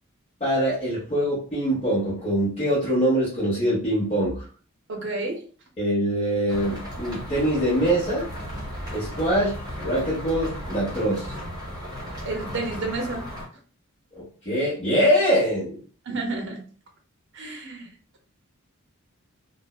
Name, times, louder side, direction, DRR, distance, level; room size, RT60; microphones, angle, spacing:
voice 1, 0.4-4.5 5.8-8.3 8.9-9.5 9.8-11.3 14.1-15.8, equal, 30° left, -10 dB, 1.0 m, -23 dB
voice 2, 4.9-5.4 12.2-13.2 16.1-16.6 17.3-17.9, right 3 dB, 60° right, 2 dB, 0.6 m, -30 dB
sound 1, 6.5-13.5, equal, 20° right, 0.9 m, -35 dB
2.6 x 2.0 x 2.3 m, 0.42 s
head